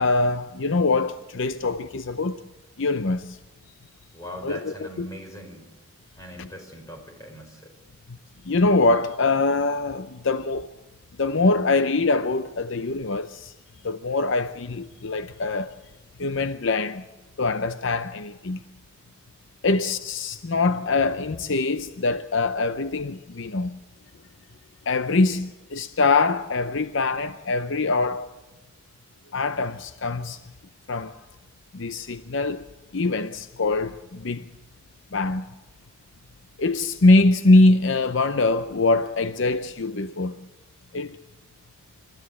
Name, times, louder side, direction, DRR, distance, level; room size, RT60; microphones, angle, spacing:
voice 1, 0.0-2.4 2.8-3.4 4.4-5.1 6.4-6.5 8.5-10.7 11.2-13.5 13.8-15.7 16.2-17.0 17.4-18.6 19.6-23.8 24.9-28.3 29.3-30.4 30.9-31.1 31.7-32.6 32.9-34.4 35.1-35.4 36.6-40.3 40.9-41.2, left 3 dB, 60° left, 0.7 m, -23 dB
voice 2, 4.1-5.6 6.2-7.7 10.1-10.2, equal, 15° left, 4.2 m, -40 dB
26.5 x 13.5 x 8.4 m
head